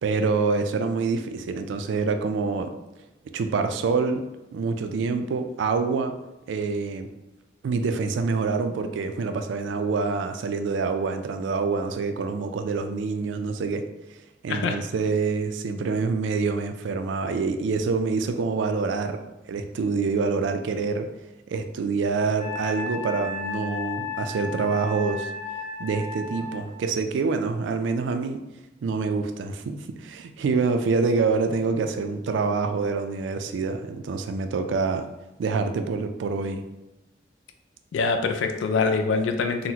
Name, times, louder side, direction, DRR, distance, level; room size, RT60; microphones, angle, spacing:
voice 1, 0.0-2.7 3.3-4.2 4.5-6.1 6.5-7.1 7.6-13.8 14.4-21.1 21.5-25.3 25.8-28.4 28.8-35.1 35.4-36.6, right 4 dB, 80° right, 7 dB, 0.3 m, -26 dB
Wind instrument woodwind instrument, 22.4-26.7, left 3 dB, 40° left, 0.6 m, -34 dB
voice 2, 37.9-39.7, left 4 dB, 85° left, 6 dB, 0.3 m, -24 dB
3.8 x 2.0 x 2.8 m, 0.98 s
head